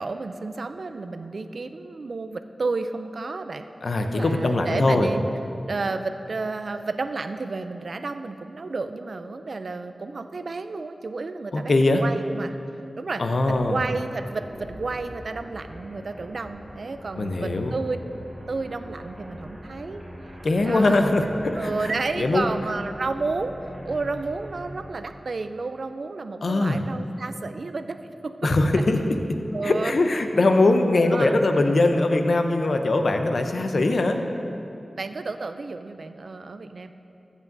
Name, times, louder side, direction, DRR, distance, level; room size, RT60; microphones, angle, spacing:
voice 1, 0.0-3.7 4.1-5.2 5.7-12.5 13.0-13.2 13.5-18.0 18.5-20.0 20.6-21.1 21.5-28.3 29.5-29.9 31.1-31.4 35.0-36.9, right 3 dB, 70° right, 9 dB, 0.4 m, -31 dB
voice 2, 3.8-5.1 11.5-12.0 13.2-13.8 17.2-17.8 20.4-21.7 22.2-22.5 26.4-26.8 28.4-29.2 29.6-34.2, left 2 dB, 70° left, 5 dB, 0.6 m, -21 dB
sound 1, 13.4-24.9, equal, 30° right, 2.1 m, -42 dB
14.5 x 8.2 x 2.6 m, 2.7 s
cardioid pair, 55°, 0 cm